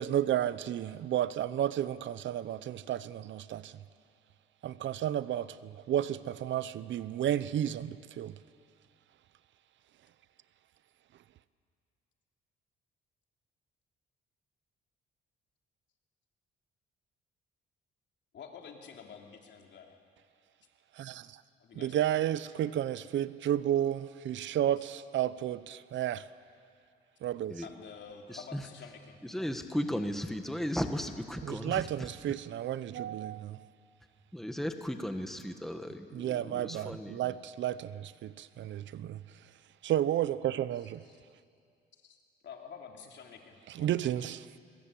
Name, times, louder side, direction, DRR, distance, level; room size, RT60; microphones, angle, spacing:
voice 1, 0.0-3.8 4.6-8.4 21.0-21.4 21.7-26.3 27.2-27.6 31.4-33.6 36.1-39.2 39.8-41.0 43.7-44.4, right 11 dB, 70° right, 0.8 m, -32 dB
voice 2, 18.3-20.0 21.6-22.1 24.8-24.9 27.6-29.2 40.7-41.2 41.9-42.2 42.4-44.1, left 6 dB, 65° left, 3.2 m, -49 dB
voice 3, 28.3-28.6 29.2-32.1 34.3-37.3, equal, ahead, 1.5 m, -36 dB
21.5 x 21.5 x 8.5 m
cardioid pair, 90°, 20 cm